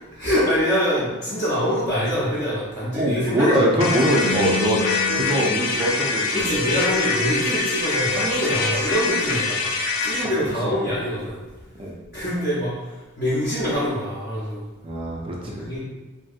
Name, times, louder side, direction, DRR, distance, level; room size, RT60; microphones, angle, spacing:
voice 1, 0.1-3.8 6.3-11.4 12.1-14.7 15.6-15.8, equal, 50° left, -11 dB, 0.7 m, -25 dB
voice 2, 3.0-4.8 5.1-6.5 11.8-11.9 14.8-15.8, right 1 dB, 25° right, -1 dB, 0.4 m, -23 dB
sound 1, 3.8-10.3, left 4 dB, 75° left, 0.4 m, -25 dB
sound 2, 4.2-9.5, left 2 dB, 85° right, 0.7 m, -31 dB
2.7 x 2.7 x 2.4 m, 1.2 s
head